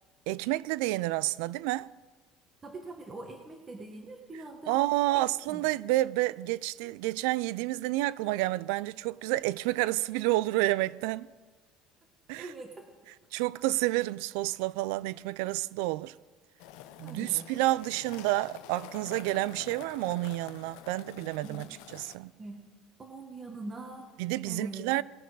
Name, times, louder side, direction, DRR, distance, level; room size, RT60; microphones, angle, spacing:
voice 1, 0.3-1.9 4.7-11.3 12.3-12.5 13.3-16.1 17.0-22.3 24.2-25.0, right 18 dB, 85° right, 0.3 m, -29 dB
voice 2, 2.6-4.8 5.1-5.6 12.4-12.9 17.0-17.4 21.4-21.7 22.4-22.7 23.0-24.1 24.4-24.9, right 2 dB, 15° right, 1.1 m, -43 dB
sound 1, 16.6-22.2, left 12 dB, 75° left, 0.7 m, -48 dB
19.5 x 6.7 x 4.7 m
cardioid pair, 180°, 0 cm